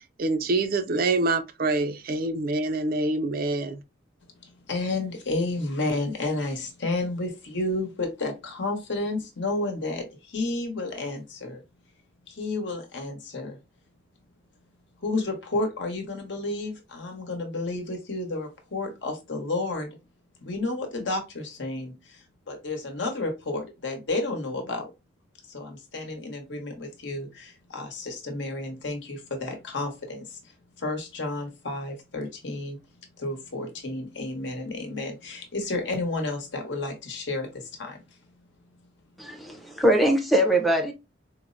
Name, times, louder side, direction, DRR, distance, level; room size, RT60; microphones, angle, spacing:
voice 1, 0.2-3.8, right 2 dB, 50° right, 0.4 m, -26 dB
voice 2, 4.4-11.6 12.3-13.6 15.0-19.9 20.4-24.9 25.5-30.5 30.8-32.8 33.2-38.0, left 2 dB, 65° left, 1.0 m, -31 dB
voice 3, 39.2-40.9, right 1 dB, ahead, 0.6 m, -22 dB
4.5 x 2.0 x 2.5 m
head